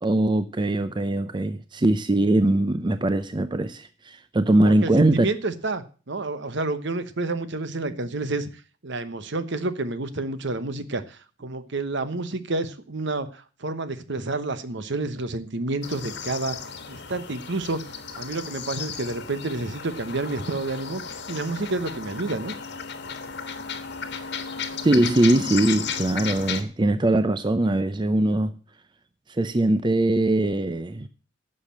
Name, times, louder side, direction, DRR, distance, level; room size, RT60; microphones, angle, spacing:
voice 1, 0.0-5.3 24.8-28.5 29.3-31.1, right 1 dB, 25° right, 0.5 m, -21 dB
voice 2, 4.6-8.5 8.8-16.6 16.9-17.8 18.2-22.5, right 2 dB, 60° right, 1.1 m, -29 dB
sound 1, 15.8-26.6, left 6 dB, 55° left, 1.4 m, -34 dB
11.0 x 6.6 x 7.4 m
head